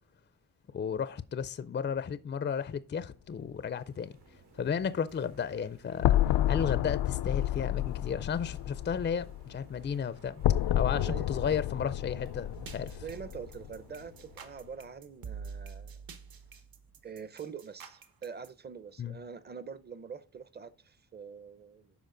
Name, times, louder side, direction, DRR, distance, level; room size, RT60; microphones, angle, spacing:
voice 1, 0.7-4.2 4.6-6.2 6.5-10.4 10.7-13.0 19.0-19.2, left 7 dB, 30° left, 0.4 m, -33 dB
sound 1, 3.0-14.5, right 3 dB, 80° right, 2.7 m, -58 dB
sound 2, 6.0-14.0, left 13 dB, 85° left, 0.5 m, -30 dB
voice 2, 10.9-11.2 13.0-16.0 17.0-21.9, right 6 dB, 25° right, 0.6 m, -44 dB
sound 3, 12.5-18.5, right 6 dB, 60° right, 1.1 m, -46 dB
12.0 x 4.8 x 3.8 m
wide cardioid pair, 160°, 39 cm